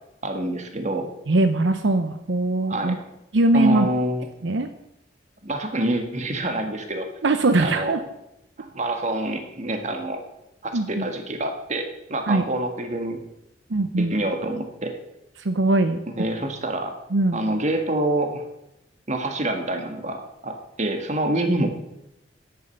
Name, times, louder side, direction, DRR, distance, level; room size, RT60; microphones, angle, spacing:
voice 1, 0.2-1.1 2.7-3.0 3.5-4.3 5.4-7.1 7.6-7.9 8.6-10.2 10.6-13.2 14.0-14.9 16.1-17.0 17.3-18.4 19.1-21.7, right 1 dB, 40° right, 5 dB, 1.8 m, -26 dB
voice 2, 1.3-3.0 3.3-3.9 4.4-4.7 7.2-8.0 10.7-11.1 12.3-12.4 13.7-14.2 15.4-16.0 17.1-17.4, right 2 dB, 75° right, 8 dB, 0.7 m, -21 dB
10.5 x 8.7 x 7.1 m, 0.86 s
head